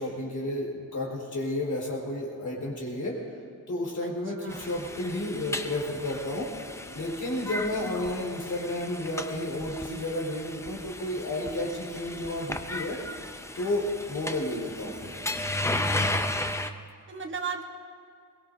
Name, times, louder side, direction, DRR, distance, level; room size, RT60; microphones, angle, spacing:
voice 1, 0.0-3.2 3.7-6.5 6.9-13.0 13.5-15.2, left 1 dB, 60° left, -3 dB, 4.4 m, -32 dB
voice 2, 4.4-4.7 14.5-14.6 16.5-16.6 17.1-17.6, right 6 dB, 35° right, 2 dB, 1.1 m, -36 dB
sound 1, 4.5-16.7, left 1 dB, 10° left, 0.5 m, -35 dB
22.5 x 21.5 x 2.6 m, 2.3 s
wide cardioid pair, 180°, 33 cm